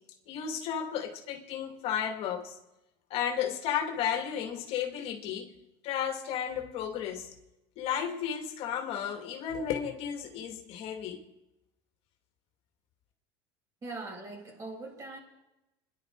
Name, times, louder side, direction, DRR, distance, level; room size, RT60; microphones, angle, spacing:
voice 1, 0.3-2.6 3.1-5.5 5.8-7.3 7.8-11.2, left 8 dB, 55° left, 2.4 m, -33 dB
voice 2, 13.8-15.2, right 2 dB, 30° right, 6.5 m, -41 dB
26.0 x 11.0 x 4.7 m
supercardioid pair, 115°, 12 cm